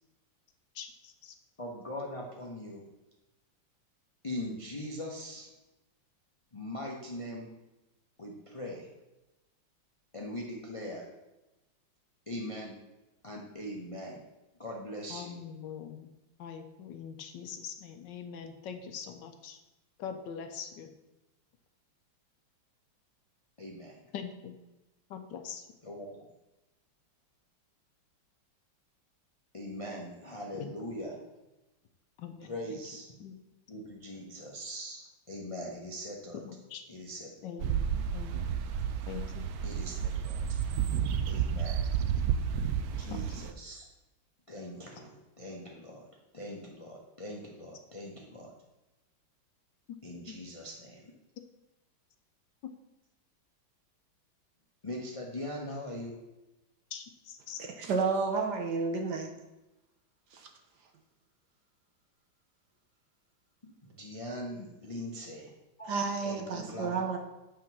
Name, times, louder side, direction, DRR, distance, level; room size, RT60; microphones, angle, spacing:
voice 1, 0.7-1.3 15.1-16.1 16.4-19.6 20.0-20.9 24.1-24.5 25.1-25.7 30.6-30.7 32.2-32.8 33.2-33.3 36.3-36.8 37.4-38.5 39.1-39.5 43.1-43.4 50.3-50.4 52.6-52.7 56.9-57.6, left 7 dB, 70° left, 6 dB, 1.3 m, -43 dB
voice 2, 1.6-2.8 4.2-5.5 6.5-7.5 8.2-8.9 10.1-11.1 12.3-12.8 13.2-14.2 14.6-15.4 23.6-24.0 25.8-26.1 29.5-31.2 32.5-33.1 33.7-36.4 36.9-37.3 39.6-40.7 41.3-41.9 43.0-43.8 44.5-46.1 46.3-48.5 50.0-51.1 54.8-56.2 63.6-65.5 65.8-65.9 66.2-67.1, left 1 dB, 45° left, -2 dB, 0.4 m, -41 dB
sound 1, 37.6-43.5, right 8 dB, 90° right, 0.8 m, -31 dB
voice 3, 57.8-59.3 60.3-60.5 65.9-67.2, right 4 dB, 60° right, 4 dB, 1.3 m, -31 dB
8.7 x 3.7 x 5.9 m, 1.0 s
omnidirectional pair, 2.2 m